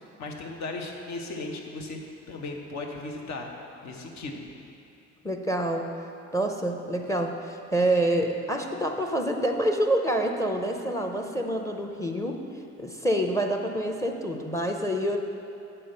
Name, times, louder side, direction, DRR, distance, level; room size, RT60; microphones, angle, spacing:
voice 1, 0.2-2.0 2.3-3.5 3.8-4.4, left 2 dB, 65° left, 1 dB, 1.1 m, -36 dB
voice 2, 5.2-5.9 6.3-12.4 12.8-15.2, right 1 dB, 10° left, 4 dB, 0.6 m, -27 dB
8.5 x 4.4 x 6.5 m, 2.7 s
cardioid pair, 90°, 30 cm